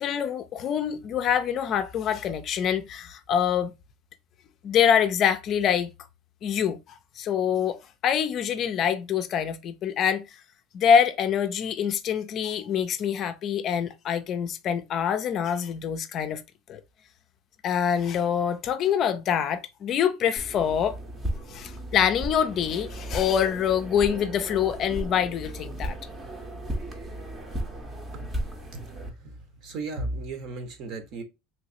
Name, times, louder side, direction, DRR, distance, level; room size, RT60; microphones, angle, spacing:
voice 1, 0.0-3.7 4.6-5.9 6.4-6.8 7.2-10.2 10.7-16.4 16.7-16.8 17.6-21.0 21.5-26.0, left 8 dB, 40° left, 0.4 m, -25 dB
sound 1, 20.4-29.1, right 1 dB, 20° right, 0.7 m, -35 dB
voice 2, 28.7-31.2, right 2 dB, 50° right, 0.9 m, -36 dB
3.1 x 3.0 x 2.7 m
supercardioid pair, 145°, 0 cm